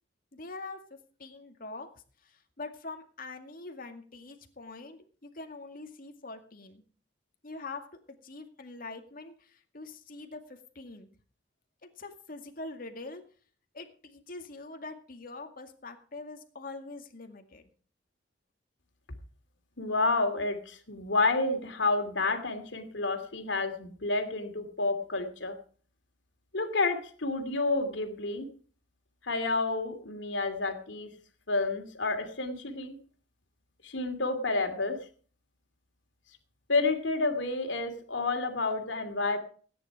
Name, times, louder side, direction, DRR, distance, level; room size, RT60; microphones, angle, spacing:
voice 1, 0.3-0.8 1.2-1.9 2.2-6.8 7.4-7.8 8.2-11.1 12.0-13.2 13.7-17.7, left 3 dB, 50° left, 5 dB, 2.1 m, -44 dB
voice 2, 19.8-25.6 26.5-28.5 29.2-31.1 31.5-33.0 33.8-35.0 36.7-39.4, left 3 dB, 80° left, 6 dB, 2.7 m, -30 dB
17.5 x 10.0 x 4.9 m, 0.42 s
head